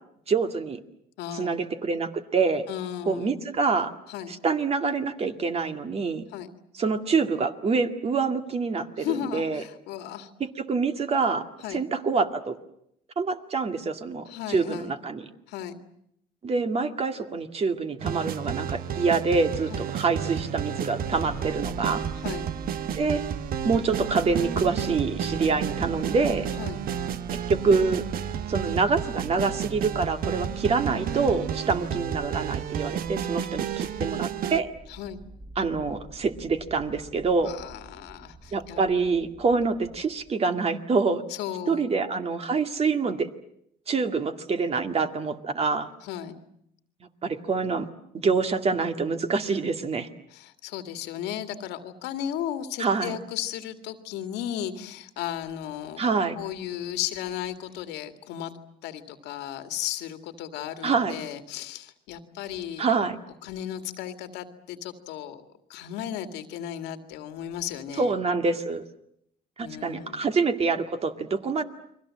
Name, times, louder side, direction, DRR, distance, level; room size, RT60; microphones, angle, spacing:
voice 1, 0.3-0.8 1.3-2.7 3.1-3.9 4.4-6.2 6.8-9.6 10.4-11.4 11.7-12.6 13.2-15.2 16.4-22.0 23.0-23.2 23.6-26.5 27.3-28.0 28.5-34.7 35.6-37.5 38.5-41.2 41.7-43.3 43.9-45.9 47.2-47.9 48.2-50.1 52.8-53.2 56.0-56.4 60.8-61.1 62.8-63.2 68.0-68.8 69.6-71.6, right 4 dB, 35° right, 7 dB, 2.2 m, -26 dB
voice 2, 1.2-1.6 2.7-3.4 4.1-4.3 6.3-6.5 9.0-10.3 11.6-11.8 14.3-14.9 15.5-15.8 19.7-19.9 22.2-22.5 26.6-26.8 34.9-35.2 37.5-38.8 41.3-41.9 46.0-46.4 50.3-56.0 56.4-58.5 58.8-62.8 63.4-65.4 65.7-68.2 69.6-70.3, left 10 dB, 90° left, 8 dB, 2.1 m, -35 dB
sound 1, 18.0-34.6, right 9 dB, 60° right, 1.1 m, -31 dB
sound 2, 21.0-40.3, right 1 dB, ahead, 1.3 m, -43 dB
30.0 x 22.5 x 7.6 m, 0.72 s
cardioid pair, 110°, 17 cm